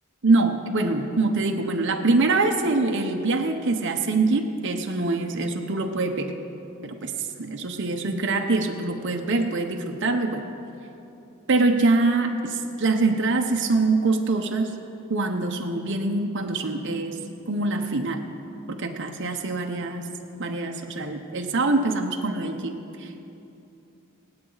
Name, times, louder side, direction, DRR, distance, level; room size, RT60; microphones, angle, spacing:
voice 1, 0.2-6.4 6.8-10.4 11.5-14.7 15.1-17.2 17.5-18.2 18.7-20.1 20.4-23.2, right 3 dB, 55° right, 3 dB, 0.9 m, -24 dB
26.0 x 8.8 x 4.0 m, 2.8 s
head